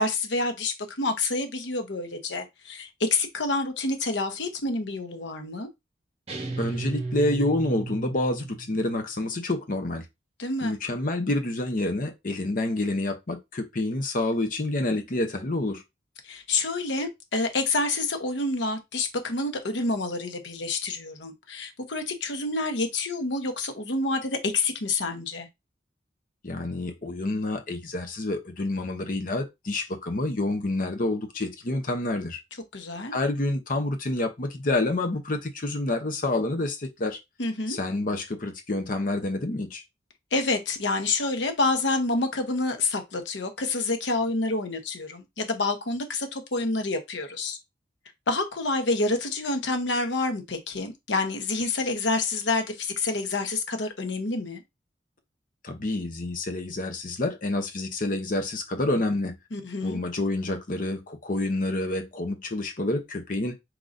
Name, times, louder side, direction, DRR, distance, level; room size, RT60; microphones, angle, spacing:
voice 1, 0.0-5.7 10.4-10.8 16.2-25.5 32.7-33.1 37.4-37.8 40.3-47.6 48.3-54.6 59.5-60.0, left 3 dB, 85° left, 1.0 m, -28 dB
sound 1, 6.3-8.8, right 2 dB, 35° right, 1.2 m, -33 dB
voice 2, 6.6-10.0 10.6-15.8 26.4-32.4 33.1-37.2 37.7-39.8 55.6-59.4 59.8-63.6, left 2 dB, 50° left, 0.8 m, -28 dB
4.6 x 3.9 x 2.6 m
head